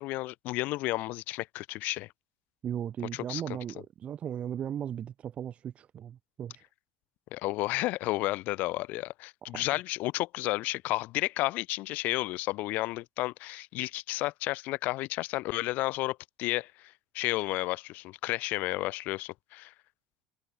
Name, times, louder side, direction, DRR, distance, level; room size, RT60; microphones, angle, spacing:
voice 1, 0.0-2.1 3.1-3.4 7.3-19.7, left 19 dB, 60° left, 1.0 m, -32 dB
voice 2, 2.6-6.6 9.5-9.6, right 9 dB, 40° right, 3.3 m, -37 dB
supercardioid pair, 110°, 3 cm